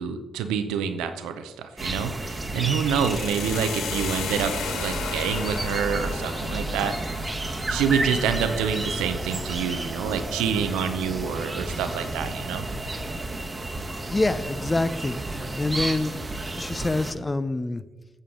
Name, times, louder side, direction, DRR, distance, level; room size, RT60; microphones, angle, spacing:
voice 1, 0.0-6.9 7.7-12.7, right 7 dB, 85° right, 8 dB, 0.6 m, -27 dB
sound 1, 1.8-17.1, right 2 dB, 30° right, 1.1 m, -31 dB
sound 2, 2.5-10.5, left 7 dB, 75° left, 0.6 m, -37 dB
voice 2, 14.1-16.2 16.5-17.8, left 2 dB, 30° left, 14 dB, 0.5 m, -26 dB
8.8 x 6.8 x 3.7 m, 1.2 s
hypercardioid pair, 40°, 0 cm